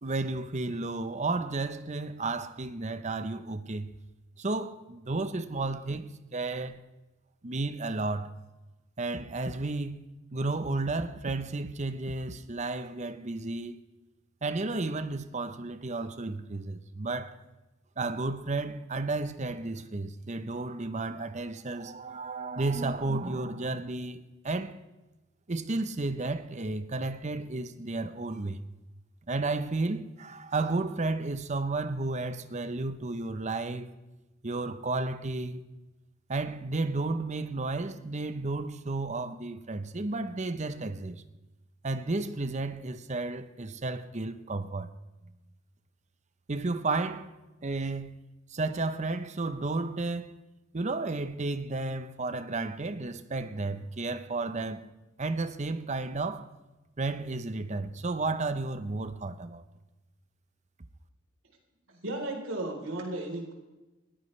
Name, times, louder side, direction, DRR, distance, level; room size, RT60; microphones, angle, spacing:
voice 1, 0.0-3.9 4.4-6.8 7.4-8.3 9.0-13.8 14.4-17.4 18.0-24.8 25.5-28.7 29.3-33.9 34.4-35.6 36.3-41.2 41.8-44.9 46.5-47.3 47.6-48.2 48.5-50.3 50.7-54.9 55.2-56.5 57.0-59.6, right 3 dB, 35° right, 0.8 m, -32 dB
voice 2, 61.9-63.5, right 1 dB, 85° right, 3.9 m, -35 dB
20.0 x 15.0 x 3.3 m
head